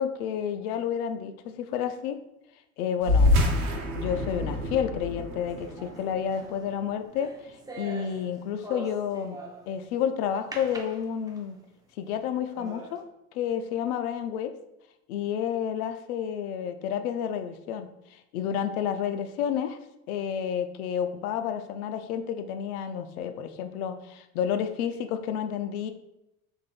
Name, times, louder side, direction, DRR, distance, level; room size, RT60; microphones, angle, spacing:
voice 1, 0.0-2.2 2.8-3.3 3.9-9.4 9.7-11.6 12.0-13.0 13.3-14.5 15.1-19.8 20.1-25.9, left 8 dB, 85° left, 8 dB, 0.5 m, -30 dB
sound 1, 3.0-7.9, left 2 dB, 85° right, 0.8 m, -27 dB
sound 2, 5.5-9.8 10.5-11.6 12.1-12.2 12.6-13.0, right 2 dB, 10° right, 0.5 m, -43 dB
3.9 x 3.5 x 2.3 m, 0.86 s
hypercardioid pair, 80°, 43 cm